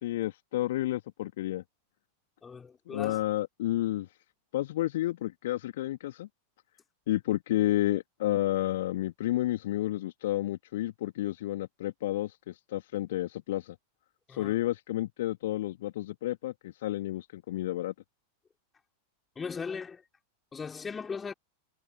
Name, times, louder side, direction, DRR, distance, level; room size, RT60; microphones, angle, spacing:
voice 1, 0.0-1.6 2.9-4.1 4.5-6.3 7.1-13.8 14.3-17.9, left 15 dB, 55° left, 2.0 m, -31 dB
voice 2, 2.4-3.2 14.3-14.5 19.4-20.0 20.5-21.3, left 5 dB, 15° left, 4.3 m, -38 dB
figure-of-eight pair, 90°, 0 cm